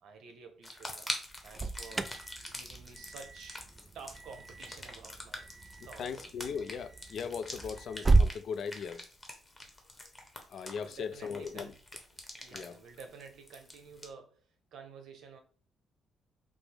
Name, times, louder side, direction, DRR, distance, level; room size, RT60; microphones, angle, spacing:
voice 1, 0.0-1.1 1.4-2.1 2.5-3.7 3.9-6.2 10.8-11.8 12.4-15.4, right 5 dB, 75° right, 0.8 m, -51 dB
sound 1, 0.6-14.1, left 1 dB, 15° left, 0.9 m, -45 dB
Alarm, 1.2-8.4, right 3 dB, 25° right, 0.3 m, -33 dB
voice 2, 6.0-9.1 10.5-11.7 12.5-12.8, left 6 dB, 65° left, 0.3 m, -38 dB
4.9 x 2.0 x 3.3 m
cardioid pair, 90°, 0 cm